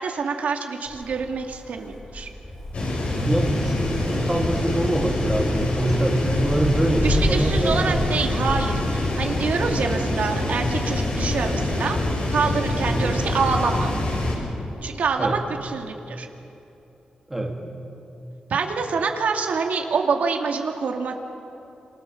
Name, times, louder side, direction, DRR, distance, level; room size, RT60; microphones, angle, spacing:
voice 1, 0.0-2.3 7.0-12.0 12.3-13.9 14.8-16.3 18.5-21.2, right 5 dB, 70° right, 3 dB, 2.3 m, -26 dB
Wind, 0.9-15.8, left 1 dB, 20° left, 4.0 m, -33 dB
sound 1, 2.7-14.4, left 2 dB, 55° left, 6.9 m, -25 dB
voice 2, 3.2-8.0 12.9-13.2 15.2-15.4 17.3-17.5, right 1 dB, 10° right, 0 dB, 2.7 m, -25 dB
28.0 x 27.5 x 7.2 m, 2.8 s
wide cardioid pair, 175°, 3 cm